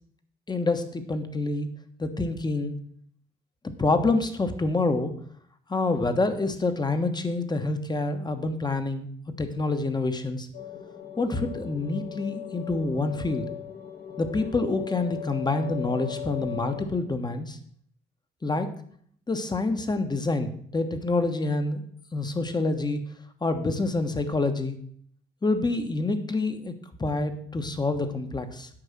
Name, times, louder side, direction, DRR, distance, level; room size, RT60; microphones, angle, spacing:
voice 1, 0.5-1.7 2.0-2.8 3.6-5.1 5.7-9.1 9.4-10.5 11.2-13.5 14.2-17.6 18.4-18.7 19.3-21.8 22.1-23.0 23.4-24.8 25.4-26.7 27.0-28.7, left 3 dB, 20° left, 8 dB, 1.3 m, -27 dB
sound 1, 10.5-16.9, left 11 dB, 55° left, 1.8 m, -38 dB
9.0 x 5.4 x 7.3 m, 0.62 s
cardioid pair, 90°, 20 cm